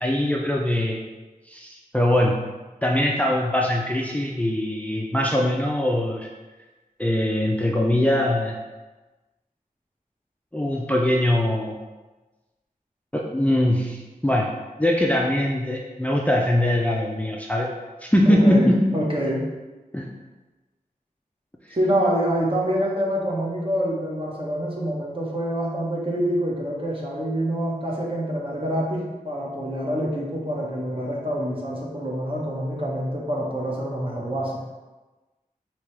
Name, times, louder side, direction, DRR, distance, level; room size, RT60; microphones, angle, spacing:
voice 1, 0.0-1.0 1.5-2.4 2.8-6.3 7.0-8.6 10.5-11.8 13.1-14.5 14.8-17.7 18.0-18.8 19.9-20.1, left 1 dB, 10° left, -1 dB, 0.4 m, -22 dB
voice 2, 18.3-19.4 21.7-34.6, equal, 35° right, -3 dB, 1.1 m, -26 dB
5.0 x 2.9 x 3.2 m, 1.2 s
wide cardioid pair, 50°, 15 cm